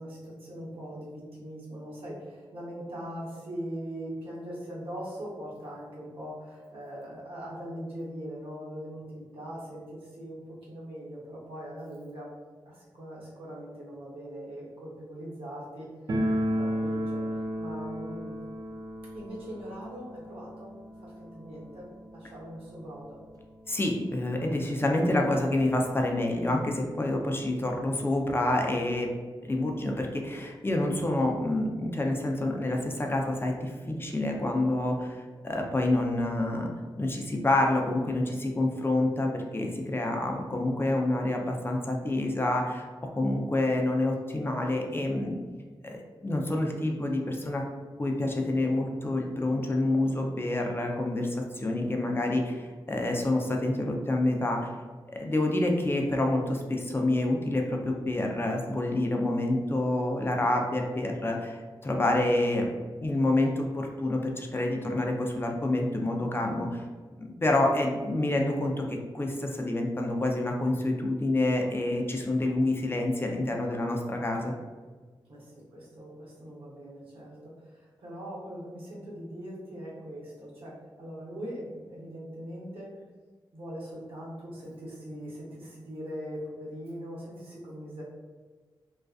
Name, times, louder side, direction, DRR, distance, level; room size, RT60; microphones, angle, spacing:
voice 1, 0.0-12.3 12.6-18.4 19.1-20.7 21.0-23.2 75.3-82.9 83.5-88.0, equal, 80° right, -6 dB, 0.9 m, -41 dB
sound 1, 16.1-22.8 23.1-23.2 23.4-23.5 24.3-24.4 24.6-25.8, equal, 45° right, 0.4 m, -33 dB
voice 2, 23.7-29.1 29.5-36.7 37.0-45.4 45.8-47.6 48.0-54.7 55.2-61.6 61.8-62.7 63.0-66.8 67.2-74.5, left 1 dB, 25° left, 1 dB, 0.4 m, -28 dB
2.4 x 2.3 x 2.3 m, 1.4 s
cardioid pair, 60°, 9 cm